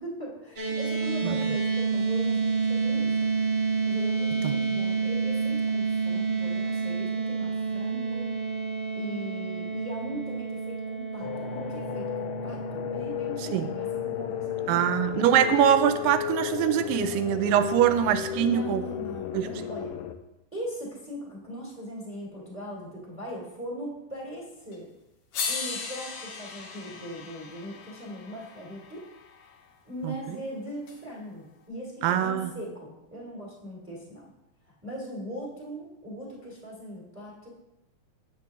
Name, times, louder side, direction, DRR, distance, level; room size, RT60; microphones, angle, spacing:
voice 1, 0.0-3.1 3.5-8.3 9.0-15.0 18.3-19.9 20.5-24.9 25.5-29.1 29.8-34.3 34.6-37.5, equal, 5° right, -4 dB, 1.6 m, -40 dB
sound 1, 0.6-15.0, right 5 dB, 25° right, 1.5 m, -29 dB
sound 2, 11.2-20.1, left 12 dB, 85° left, 2.2 m, -34 dB
voice 2, 14.7-18.8 19.3-19.5 30.0-30.1 32.0-32.5, right 10 dB, 85° right, 10 dB, 2.2 m, -23 dB
sound 3, 24.7-24.8 25.3-29.5 30.9-31.0, left 5 dB, 65° left, 1.9 m, -37 dB
8.4 x 7.5 x 3.6 m, 0.90 s
omnidirectional pair, 4.0 m